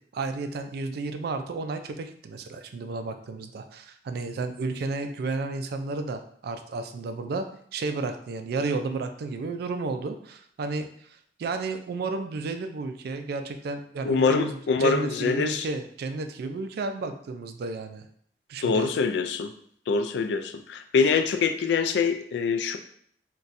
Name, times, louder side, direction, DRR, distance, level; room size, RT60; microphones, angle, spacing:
voice 1, 0.1-7.5 7.7-10.9 11.4-18.1 18.5-18.9, right 3 dB, 60° right, 7 dB, 0.3 m, -32 dB
voice 2, 14.0-15.7 18.6-19.5 19.9-22.8, left 5 dB, 70° left, 8 dB, 0.3 m, -24 dB
2.5 x 2.3 x 4.0 m, 0.63 s
head